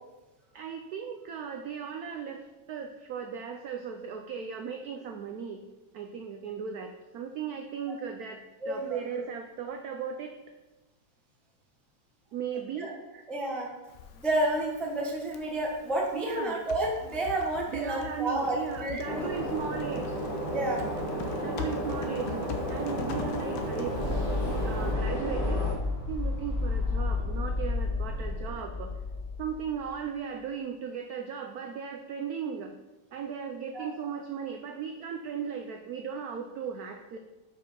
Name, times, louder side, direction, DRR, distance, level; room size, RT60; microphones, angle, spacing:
voice 1, 0.5-5.6 5.9-10.3 12.3-13.3 16.1-16.6 17.7-20.2 21.4-25.7 26.1-28.9 29.4-32.7 33.1-37.2, right 7 dB, 80° right, 5 dB, 0.8 m, -37 dB
voice 2, 8.6-9.0 12.8-12.9 13.3-13.7 14.1-19.4 20.5-20.8 33.7-33.9, right 1 dB, ahead, -1 dB, 0.5 m, -30 dB
Typing, 13.9-24.9, left 7 dB, 90° left, 1.5 m, -42 dB
sound 1, 19.0-25.7, right 1 dB, 50° left, 1.8 m, -33 dB
sound 2, 22.8-29.8, left 3 dB, 35° left, 1.4 m, -32 dB
5.5 x 5.3 x 5.4 m, 1.1 s
omnidirectional pair, 2.2 m